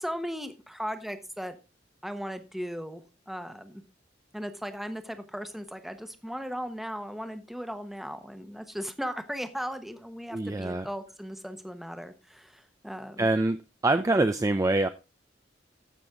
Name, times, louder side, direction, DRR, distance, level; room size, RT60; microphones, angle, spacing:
voice 1, 0.0-1.6 2.0-3.8 4.3-13.3, equal, ahead, 1.0 m, -37 dB
voice 2, 10.3-10.9 13.2-13.6 13.8-14.9, right 2 dB, 20° right, 0.4 m, -24 dB
15.0 x 6.1 x 3.6 m
head